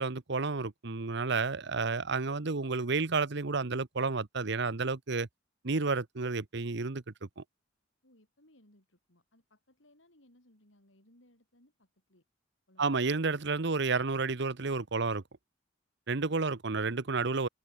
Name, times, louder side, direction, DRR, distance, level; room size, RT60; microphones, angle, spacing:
voice 1, 0.0-5.3 5.6-7.4 12.8-15.2 16.1-17.5, right 4 dB, 65° right, 1.0 m, -31 dB
voice 2, 8.0-12.3 12.7-12.9, left 1 dB, 80° left, 7.9 m, -64 dB
head